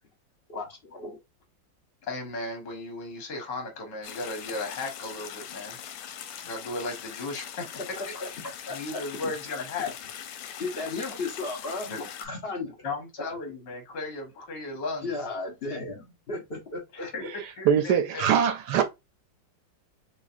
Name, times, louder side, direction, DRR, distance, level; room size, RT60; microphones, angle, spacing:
voice 1, 0.5-1.2 8.0-9.3 10.6-12.8 15.0-17.1, left 3 dB, 45° left, 0.9 m, -35 dB
voice 2, 2.1-5.8 6.4-7.8 8.1-8.2 8.7-9.9 11.9-12.0 12.8-15.2 16.9-18.3, left 3 dB, 70° left, 1.9 m, -35 dB
sound 1, 4.0-12.2, left 9 dB, 90° left, 1.4 m, -41 dB
voice 3, 17.7-18.8, right 8 dB, 70° right, 1.1 m, -22 dB
5.6 x 2.4 x 2.5 m
omnidirectional pair, 2.0 m